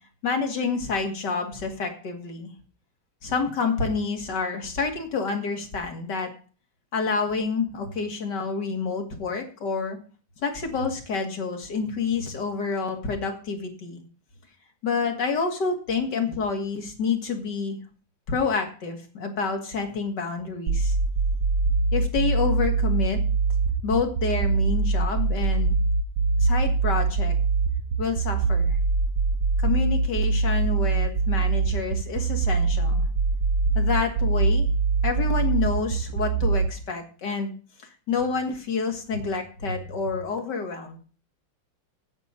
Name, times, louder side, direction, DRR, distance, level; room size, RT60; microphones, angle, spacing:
voice 1, 0.2-2.5 3.2-6.3 6.9-10.0 10.4-14.0 14.8-17.8 18.3-21.0 21.9-23.2 23.8-25.8 26.4-27.4 28.0-28.8 29.6-33.1 33.7-34.7 35.0-37.5 38.1-41.0, left 4 dB, 50° left, 4 dB, 2.5 m, -28 dB
sound 1, 20.7-36.7, right 4 dB, 75° right, 1.6 m, -23 dB
9.3 x 5.8 x 8.2 m, 0.38 s
omnidirectional pair, 2.4 m